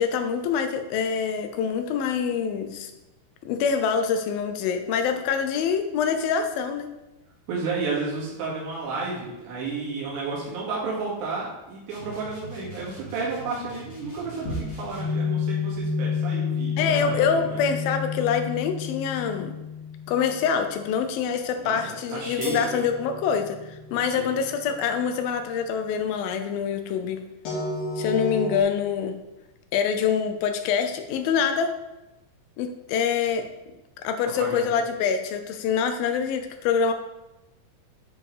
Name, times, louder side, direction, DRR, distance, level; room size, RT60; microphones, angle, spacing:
voice 1, 0.0-2.9 3.5-6.9 16.8-19.5 20.1-27.2 28.0-29.2 29.7-31.7 32.6-33.5 34.0-36.9, left 7 dB, 80° left, 7 dB, 2.2 m, -25 dB
voice 2, 7.5-17.6 21.6-22.6 24.0-24.3 34.4-34.6, right 4 dB, 85° right, -5 dB, 4.4 m, -32 dB
sound 1, 11.9-15.3, right 1 dB, 40° left, 0.8 m, -43 dB
sound 2, 14.5-20.7 22.4-25.2 27.5-28.6, left 4 dB, 65° left, 4.4 m, -31 dB
10.5 x 4.7 x 4.9 m, 0.99 s
omnidirectional pair, 4.9 m